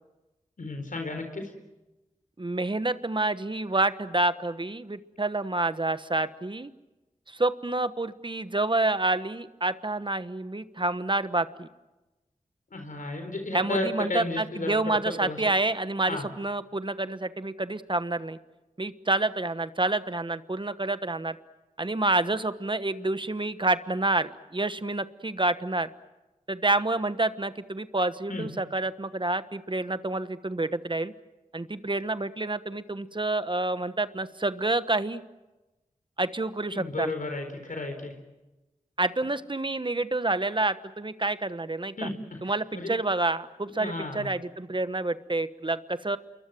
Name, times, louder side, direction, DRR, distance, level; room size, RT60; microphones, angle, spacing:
voice 1, 0.6-1.5 12.7-15.4 16.1-16.2 28.3-28.5 36.7-38.1 42.0-42.9 43.8-44.3, left 2 dB, 80° left, 6 dB, 4.1 m, -33 dB
voice 2, 2.4-6.7 7.3-11.7 13.5-18.4 18.8-21.4 21.8-25.9 26.5-31.1 31.5-35.2 36.2-37.1 39.0-42.1 42.4-46.2, right 2 dB, 35° right, 12 dB, 1.2 m, -28 dB
28.0 x 23.0 x 7.7 m, 1.1 s
cardioid pair, 45°, 14 cm